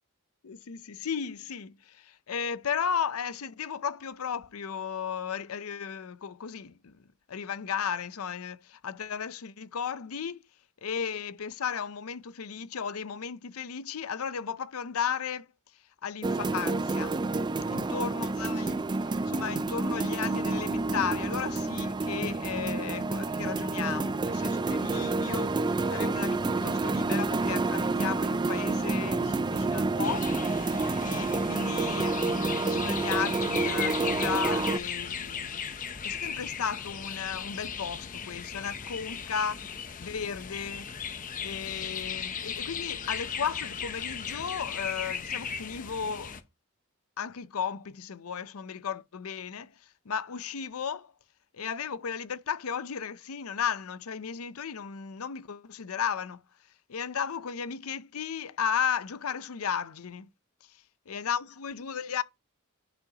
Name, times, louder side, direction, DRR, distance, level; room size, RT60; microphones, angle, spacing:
voice 1, 0.4-7.0 7.3-10.4 10.8-15.5 15.7-17.2 17.7-30.3 31.0-39.6 40.0-40.9 41.4-46.4 47.2-51.1 51.5-56.4 56.9-60.3 60.6-60.7 61.1-62.2, left 7 dB, 80° left, 0.6 m, -35 dB
sound 1, 16.2-34.8, right 3 dB, 20° right, 0.3 m, -29 dB
sound 2, 30.0-46.4, left 7 dB, 40° left, 0.7 m, -37 dB
10.5 x 5.7 x 2.9 m
head